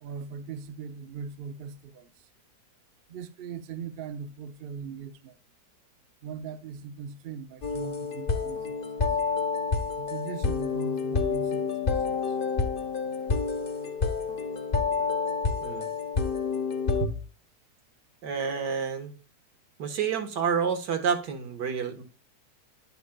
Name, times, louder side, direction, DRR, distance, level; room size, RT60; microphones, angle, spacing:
voice 1, 0.0-2.1 3.1-5.4 6.2-8.8 10.0-12.4, right 6 dB, 60° right, 0.6 m, -40 dB
sound 1, 7.6-17.1, left 5 dB, 40° left, 0.9 m, -28 dB
voice 2, 18.2-19.1 19.8-22.0, right 6 dB, 80° right, 1.9 m, -29 dB
11.0 x 8.2 x 2.2 m
omnidirectional pair, 1.8 m